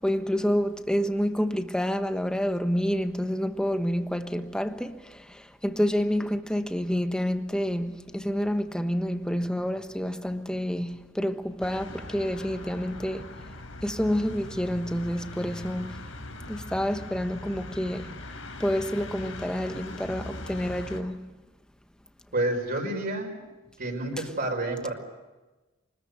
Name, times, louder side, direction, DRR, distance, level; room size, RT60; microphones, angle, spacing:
voice 1, 0.0-5.2 5.6-13.2 13.8-16.0 16.5-18.1 18.6-21.2, equal, 5° left, 1.2 m, -28 dB
sound 1, 11.6-21.0, left 2 dB, 85° left, 3.6 m, -41 dB
voice 2, 22.3-23.4 23.8-24.9, right 1 dB, 50° right, 5.5 m, -29 dB
24.5 x 20.5 x 8.3 m
head